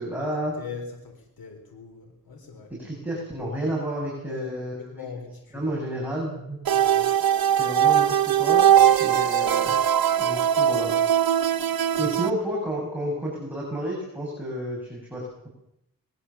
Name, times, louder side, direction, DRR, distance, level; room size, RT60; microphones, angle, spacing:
voice 1, 0.0-0.5 2.7-4.9 5.5-6.6 7.6-8.7 9.0-9.8 10.2-10.9 12.0-15.5, right 1 dB, 5° right, -4 dB, 7.0 m, -31 dB
voice 2, 0.6-2.7 4.2-4.6 4.9-5.7 6.7-7.1 9.1-9.2 12.0-12.1, left 5 dB, 90° left, 3 dB, 3.8 m, -40 dB
sound 1, 6.6-12.3, right 10 dB, 80° right, 0.9 m, -20 dB
21.5 x 21.0 x 7.1 m, 0.80 s
wide cardioid pair, 110°, 35 cm